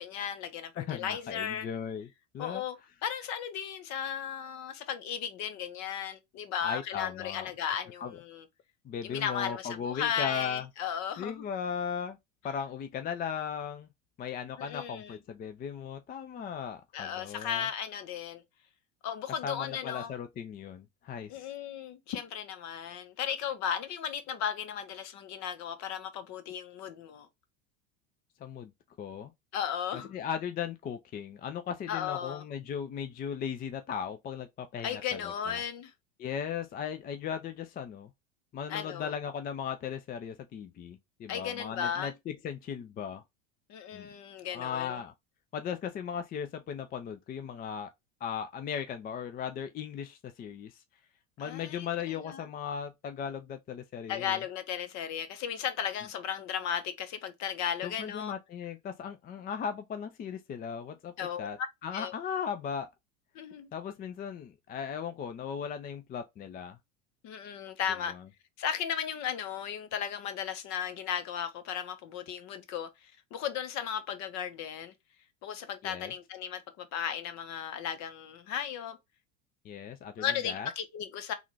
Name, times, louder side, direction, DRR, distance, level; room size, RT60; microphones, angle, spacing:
voice 1, 0.0-1.7 2.4-2.8 3.0-8.4 9.0-11.4 14.6-15.2 16.9-18.4 19.0-20.1 21.3-27.3 29.5-30.1 31.9-32.4 34.8-35.9 38.7-39.1 41.3-42.1 43.7-45.0 51.4-52.5 54.1-58.3 61.2-61.5 61.9-62.1 63.3-63.7 67.2-68.1 68.6-74.9 75.4-79.0 80.2-81.3, left 8 dB, 50° left, 0.9 m, -35 dB
voice 2, 0.8-2.1 2.3-2.6 6.6-7.5 8.0-8.1 8.8-10.7 11.2-12.2 12.4-13.9 14.2-17.7 19.4-21.5 28.4-28.7 29.0-29.3 29.9-35.6 36.2-38.1 38.5-43.2 43.9-44.1 44.5-45.1 45.5-47.9 48.2-50.8 51.4-54.4 57.8-61.1 61.4-62.9 63.7-66.8 68.1-68.2 75.8-76.1 79.6-80.7, left 7 dB, 25° left, 0.4 m, -37 dB
3.6 x 2.4 x 3.2 m
hypercardioid pair, 90°, 36 cm